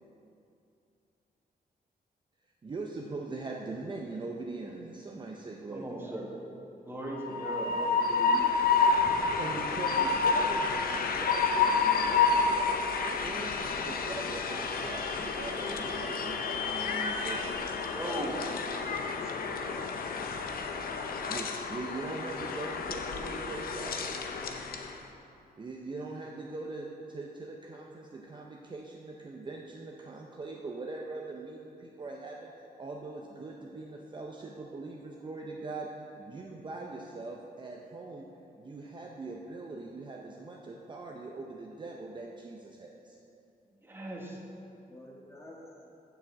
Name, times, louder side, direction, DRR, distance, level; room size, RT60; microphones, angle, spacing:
voice 1, 2.6-6.1 9.4-12.8 13.2-17.7 21.3-24.2 25.6-32.5 32.8-38.3 38.6-43.2, right 3 dB, 30° right, -1 dB, 0.6 m, -41 dB
voice 2, 5.7-6.3 6.8-8.4 17.9-18.4 43.8-44.4, right 1 dB, 15° right, -3 dB, 1.4 m, -38 dB
Train, 7.1-24.9, left 4 dB, 65° left, 0.7 m, -30 dB
voice 3, 19.0-19.8 20.2-20.3 20.9-21.0 44.9-45.9, left 1 dB, 15° left, -3 dB, 1.6 m, -50 dB
7.0 x 6.1 x 7.2 m, 2.7 s
wide cardioid pair, 135°, 16 cm